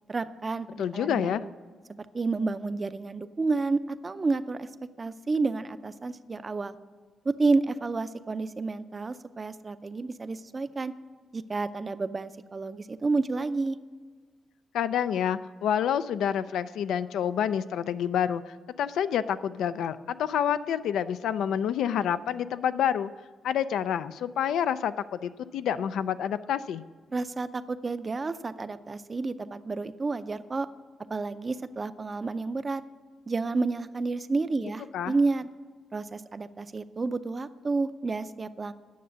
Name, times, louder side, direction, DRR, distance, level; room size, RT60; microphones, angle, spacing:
voice 1, 0.1-1.5 2.0-4.7 5.0-6.8 7.2-10.9 11.3-13.8 27.1-30.7 31.1-32.8 33.3-35.5 35.9-38.7, right 3 dB, 30° right, 13 dB, 0.5 m, -30 dB
voice 2, 0.8-1.4 14.7-23.1 23.4-26.8 34.9-35.1, left 9 dB, 85° left, 13 dB, 0.4 m, -28 dB
9.4 x 6.7 x 8.5 m, 1.5 s
cardioid pair, 105°, 0 cm